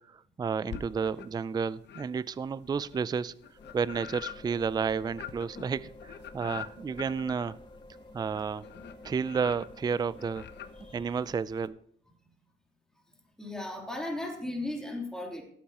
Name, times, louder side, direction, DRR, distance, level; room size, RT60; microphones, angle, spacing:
voice 1, 0.1-3.3 3.7-7.6 8.1-8.6 9.0-10.4 10.9-11.8, right 6 dB, 20° right, 18 dB, 0.4 m, -31 dB
sound 1, 0.7-1.5 1.8-11.7, left 9 dB, 60° left, 0.9 m, -45 dB
sound 2, 3.6-11.0, left 2 dB, 25° left, 1.1 m, -51 dB
voice 2, 10.7-11.2 13.4-15.4, left 1 dB, 5° left, 0 dB, 3.2 m, -36 dB
17.5 x 8.2 x 3.0 m, 0.65 s
cardioid pair, 90°, 20 cm